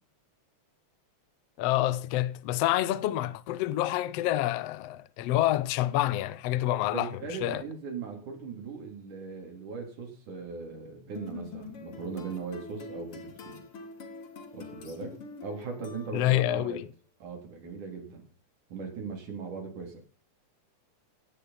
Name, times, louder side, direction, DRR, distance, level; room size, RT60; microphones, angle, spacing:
voice 1, 1.6-7.1 7.4-7.6 16.1-16.9, left 14 dB, 70° left, 1.7 m, -27 dB
voice 2, 6.9-13.6 14.5-15.1 15.4-16.9 17.2-18.3 18.7-20.0, right 5 dB, 75° right, 5.0 m, -39 dB
sound 1, 11.1-16.5, left 4 dB, 50° left, 2.8 m, -45 dB
17.5 x 9.4 x 5.8 m
omnidirectional pair, 3.6 m